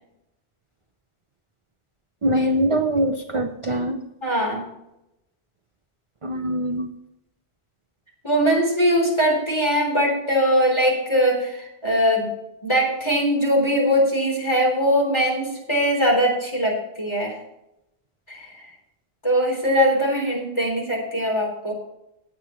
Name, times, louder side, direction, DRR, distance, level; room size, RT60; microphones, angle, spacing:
voice 1, 2.2-4.0 6.2-6.9, equal, 35° right, 5 dB, 0.8 m, -23 dB
voice 2, 4.2-4.6 8.2-12.3 12.6-17.4 18.3-18.7 19.2-21.7, equal, 25° left, 0 dB, 3.8 m, -21 dB
18.0 x 8.5 x 3.1 m, 0.87 s
omnidirectional pair, 1.1 m